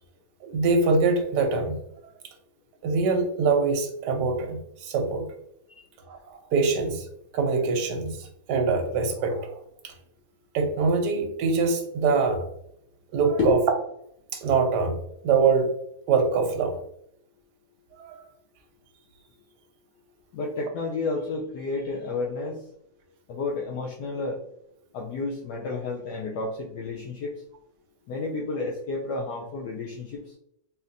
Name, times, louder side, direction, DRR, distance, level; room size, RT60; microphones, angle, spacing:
voice 1, 0.4-1.8 2.8-5.3 6.1-7.1 7.3-9.6 9.8-9.9 10.5-12.5 13.1-13.6 14.3-15.0 15.2-15.7 16.1-16.8 18.0-18.2, right 4 dB, 70° right, 4 dB, 1.2 m, -24 dB
voice 2, 20.3-22.6 23.3-24.4 24.9-27.3 28.1-30.2, left 3 dB, 70° left, -2 dB, 1.1 m, -30 dB
4.0 x 2.8 x 2.5 m, 0.76 s
omnidirectional pair, 2.0 m